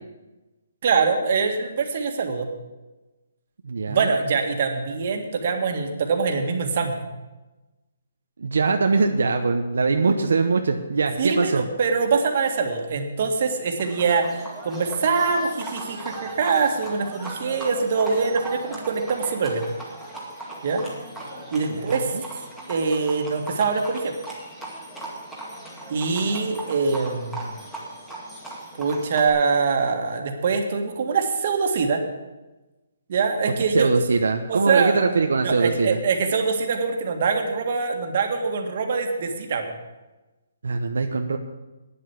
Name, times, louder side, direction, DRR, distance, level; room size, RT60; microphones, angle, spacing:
voice 1, 0.8-2.5 3.9-7.1 11.2-19.6 20.6-20.8 21.5-22.2 22.7-24.1 25.9-27.5 28.8-32.0 33.1-33.9 34.5-35.0 35.4-39.7, right 5 dB, 45° right, 4 dB, 1.8 m, -24 dB
voice 2, 3.6-4.1 8.4-11.6 21.7-21.8 33.7-36.0 40.6-41.4, right 4 dB, 80° right, 4 dB, 0.9 m, -22 dB
Livestock farm animals working animals, 13.8-29.3, right 2 dB, ahead, 2.0 m, -38 dB
10.0 x 7.7 x 8.2 m, 1.1 s
hypercardioid pair, 160°, 0 cm